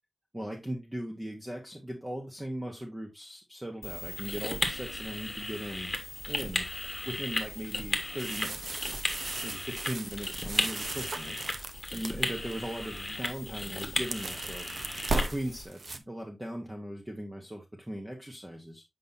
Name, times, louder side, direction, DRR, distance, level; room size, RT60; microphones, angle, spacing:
voice 1, 0.3-5.9 6.3-6.7 7.0-8.9 9.4-11.3 11.7-14.8 15.2-18.8, equal, 15° right, 1.1 m, -39 dB
sound 1, 3.8-15.7, left 1 dB, 15° left, 1.4 m, -35 dB
sound 2, 8.2-12.5 13.0-13.3 13.6-16.0, right 2 dB, 60° right, 0.7 m, -36 dB
7.8 x 5.3 x 2.7 m
wide cardioid pair, 110°, 0 cm